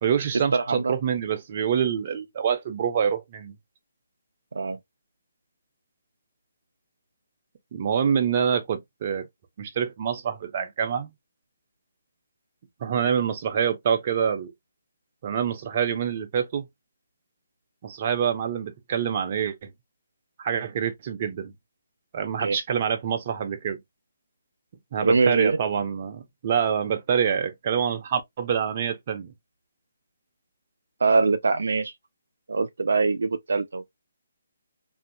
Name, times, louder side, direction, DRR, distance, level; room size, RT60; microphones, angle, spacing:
voice 1, 0.0-3.5 7.7-9.2 9.6-11.1 12.8-14.5 15.2-16.7 17.8-19.5 20.4-21.5 22.1-23.8 24.9-29.3, right 7 dB, 40° right, 0.7 m, -26 dB
voice 2, 0.5-0.9 4.5-4.8 22.4-22.6 25.0-25.6 31.0-31.9 32.5-34.0, right 4 dB, 75° right, 0.4 m, -23 dB
2.7 x 2.7 x 2.6 m
hypercardioid pair, 150°, 0 cm